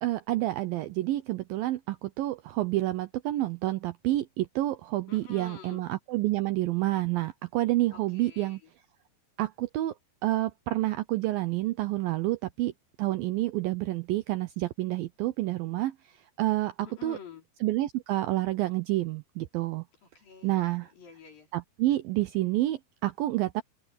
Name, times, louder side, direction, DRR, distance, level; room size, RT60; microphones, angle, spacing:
voice 1, 0.0-8.6 9.4-9.9 10.2-12.7 13.0-15.9 16.4-16.7 17.0-17.2 17.6-19.8 20.4-20.9 21.5-23.6, right 16 dB, 80° right, 2.2 m, -29 dB
voice 2, 5.1-5.9 7.9-8.7 16.8-17.5 20.0-21.5, left 6 dB, 60° left, 6.7 m, -48 dB
omnidirectional pair, 4.8 m